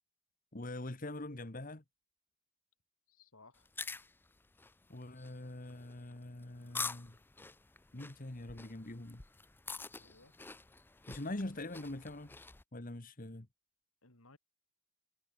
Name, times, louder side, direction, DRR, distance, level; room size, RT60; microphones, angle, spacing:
voice 1, 0.5-1.8 4.9-7.2 7.9-9.2 11.1-12.4 12.7-13.5, left 1 dB, 40° left, 1.4 m, -43 dB
voice 2, 3.1-3.7 9.9-10.4 14.0-14.4, left 3 dB, 75° left, 3.8 m, -61 dB
sound 1, 3.6-12.6, left 4 dB, 10° left, 0.4 m, -47 dB
head